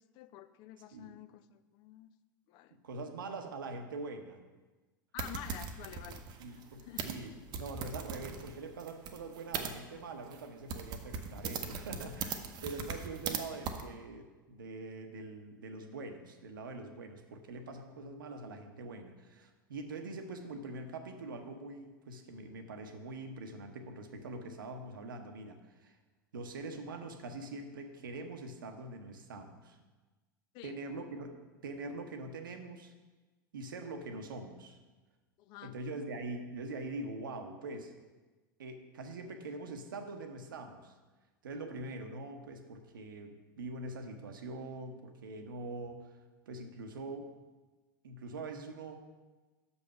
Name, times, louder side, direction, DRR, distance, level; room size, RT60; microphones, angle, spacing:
voice 1, 0.0-2.1 2.5-2.8 5.1-6.2 6.5-7.1 30.5-30.8 35.4-35.8, left 13 dB, 40° left, 13 dB, 0.4 m, -49 dB
voice 2, 2.7-4.4 6.4-7.3 7.6-26.0 26.3-29.8 30.6-31.4 31.6-32.9 33.5-34.8 35.6-37.9 38.6-40.9 41.4-46.1 46.5-47.3 48.0-49.0, right 2 dB, 70° right, 6 dB, 0.8 m, -43 dB
sound 1, 5.2-9.7 10.3-10.4 10.7-13.4 13.6-13.8, right 6 dB, 40° right, 0.7 m, -40 dB
6.4 x 5.5 x 5.5 m, 1.2 s
figure-of-eight pair, 85°, 11 cm